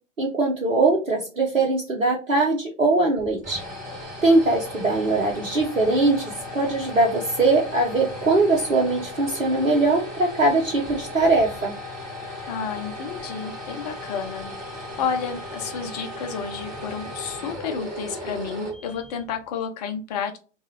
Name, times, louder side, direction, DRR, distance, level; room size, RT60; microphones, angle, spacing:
voice 1, 0.2-3.6 4.2-11.7, right 2 dB, 85° right, -1 dB, 0.8 m, -21 dB
sound 1, 3.2-19.4, left 1 dB, 20° right, 1.5 m, -36 dB
voice 2, 12.5-14.5 15.0-20.4, left 6 dB, 35° left, 5 dB, 0.4 m, -31 dB
3.6 x 2.3 x 2.8 m, 0.34 s
figure-of-eight pair, 95°, 38 cm